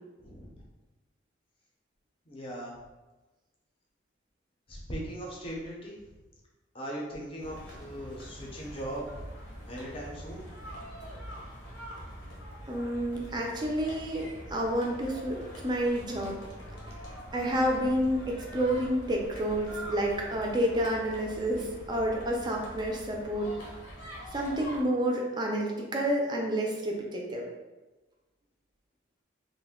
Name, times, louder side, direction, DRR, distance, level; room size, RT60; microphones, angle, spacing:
voice 1, 0.2-0.6 2.3-2.7 4.7-6.0 6.7-9.2 9.7-10.5, right 1 dB, 30° left, -3 dB, 0.5 m, -39 dB
sound 1, 7.4-24.8, equal, 90° left, 0.8 m, -44 dB
voice 2, 12.7-16.3 17.3-23.5 24.3-27.5, equal, 20° right, 0 dB, 0.4 m, -29 dB
2.5 x 2.1 x 3.5 m, 1.2 s
head